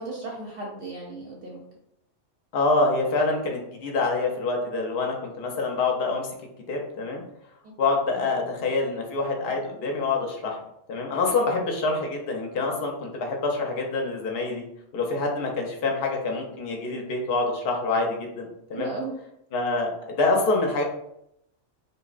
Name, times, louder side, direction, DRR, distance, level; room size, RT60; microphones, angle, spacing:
voice 1, 0.0-1.6 7.6-7.7 18.7-19.1, right 3 dB, 60° right, -3 dB, 0.7 m, -35 dB
voice 2, 2.5-6.3 6.7-7.2 7.8-10.6 10.9-14.6 14.9-18.9 19.5-20.8, left 3 dB, 60° left, 1 dB, 0.7 m, -26 dB
2.7 x 2.0 x 2.4 m, 0.78 s
omnidirectional pair, 1.3 m